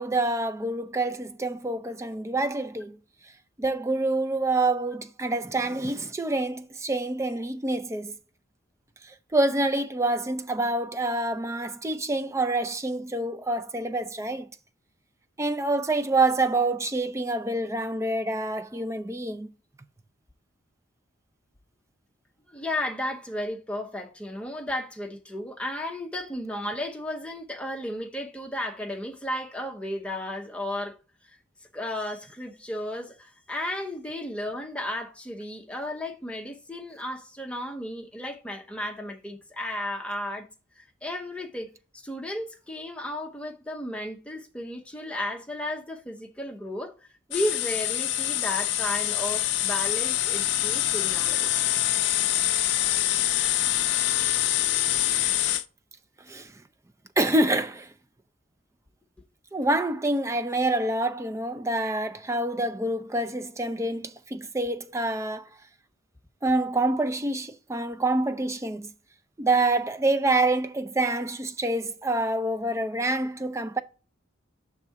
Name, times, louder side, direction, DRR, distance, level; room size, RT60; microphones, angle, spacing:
voice 1, 0.0-3.0 3.6-8.1 9.1-14.5 15.4-19.5 56.3-56.5 57.2-57.9 59.5-65.4 66.4-68.9 69.4-73.8, right 2 dB, 15° right, 0.4 m, -27 dB
voice 2, 22.5-31.0 31.7-40.5 40.8-46.9 47.3-51.5, left 1 dB, 5° left, 0.8 m, -34 dB
sound 1, 47.3-55.6, left 13 dB, 60° left, 0.4 m, -25 dB
5.9 x 3.6 x 5.6 m
head